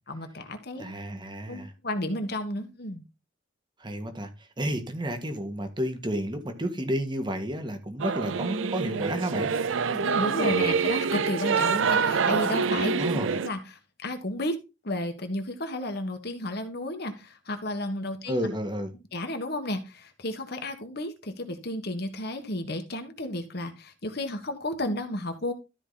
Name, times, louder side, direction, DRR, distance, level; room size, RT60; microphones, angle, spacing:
voice 1, 0.1-0.9 1.5-3.0 9.9-14.6 14.8-18.5 19.1-25.5, left 1 dB, 55° left, 1.6 m, -32 dB
voice 2, 0.8-1.7 3.8-9.5 10.4-10.6 13.0-13.3 18.3-18.9, equal, 25° right, 1.7 m, -31 dB
Singing / Musical instrument, 8.0-13.5, right 5 dB, 85° right, 0.5 m, -26 dB
13.0 x 5.0 x 4.1 m
head